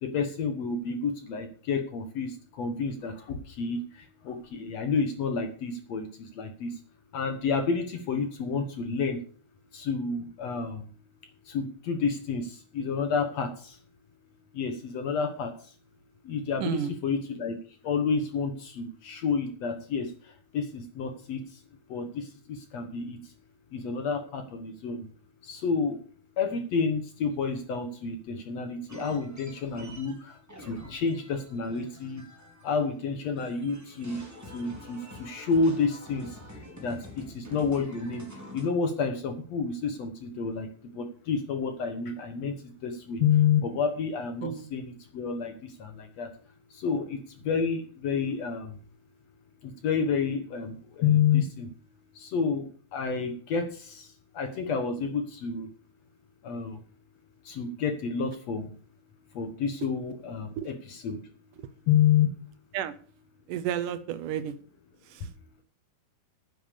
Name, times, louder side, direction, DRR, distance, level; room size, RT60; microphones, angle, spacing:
voice 1, 0.0-6.8 7.1-9.2 9.7-10.9 11.5-13.8 14.5-15.7 16.2-17.6 17.8-21.6 21.9-23.3 23.7-25.1 25.4-26.0 26.4-32.2 32.6-40.7 40.9-46.3 46.7-48.8 49.6-51.7 52.2-55.7 56.4-56.8 57.4-58.7 59.3-61.2 61.9-62.3, left 6 dB, 60° left, 7 dB, 1.9 m, -30 dB
voice 2, 16.6-16.9 44.4-44.6 60.6-60.7 62.7-62.9 63.5-64.5, right 9 dB, 75° right, 13 dB, 2.1 m, -31 dB
sound 1, 28.9-33.0 33.2-38.7, left 1 dB, 5° right, 2.8 m, -47 dB
10.0 x 9.5 x 6.7 m, 0.43 s
omnidirectional pair, 4.3 m